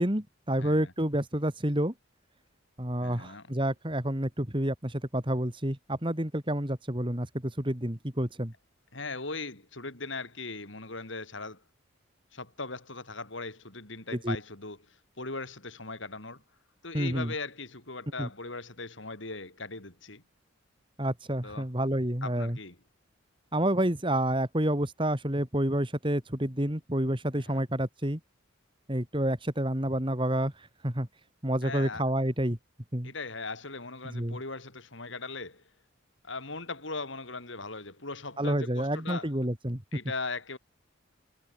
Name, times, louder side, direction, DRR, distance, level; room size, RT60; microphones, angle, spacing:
voice 1, 0.0-1.9 2.8-8.5 14.1-14.4 16.9-17.3 18.2-18.3 21.0-22.6 23.5-28.2 28.9-30.5 30.8-31.1 31.4-32.6 32.9-33.1 34.1-34.4 38.4-39.8, right 1 dB, 25° right, 2.6 m, -29 dB
voice 2, 0.6-0.9 3.0-3.5 8.9-11.6 12.3-16.4 16.8-20.2 21.4-21.7 22.2-22.8 27.3-27.6 31.6-32.1 33.0-35.6 36.2-39.3 39.9-40.6, left 3 dB, 65° left, 4.2 m, -39 dB
head